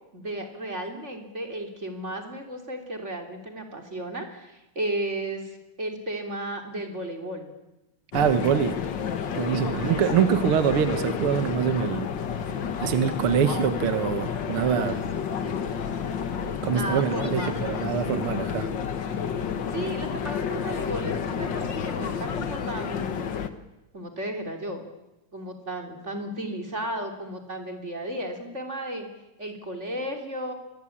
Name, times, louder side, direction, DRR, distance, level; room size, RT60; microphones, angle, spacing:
voice 1, 0.1-7.5 9.7-10.3 16.7-17.5 19.7-23.3 23.9-24.8 25.3-29.1 29.4-30.5, right 1 dB, 20° right, 4 dB, 3.4 m, -34 dB
sound 1, 8.1-23.5, left 7 dB, 50° left, 1.5 m, -30 dB
voice 2, 8.1-8.8 9.3-12.1 12.8-15.0 16.6-18.7, right 8 dB, 55° right, 10 dB, 1.6 m, -24 dB
26.0 x 22.0 x 8.7 m, 0.94 s
omnidirectional pair, 3.7 m